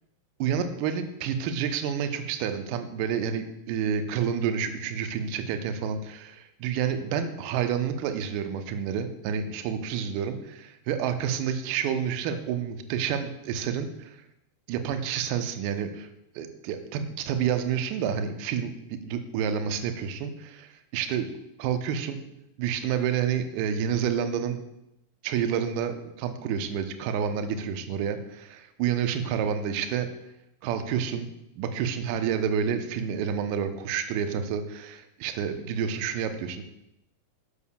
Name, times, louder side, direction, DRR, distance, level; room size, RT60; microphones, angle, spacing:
voice 1, 0.4-14.2 14.7-16.1 16.3-21.3 21.6-22.2 22.6-24.6 25.2-30.1 30.6-31.3 31.6-36.6, right 8 dB, 45° right, 8 dB, 1.0 m, -29 dB
12.5 x 8.2 x 2.5 m, 0.83 s
figure-of-eight pair, 90°, 0 cm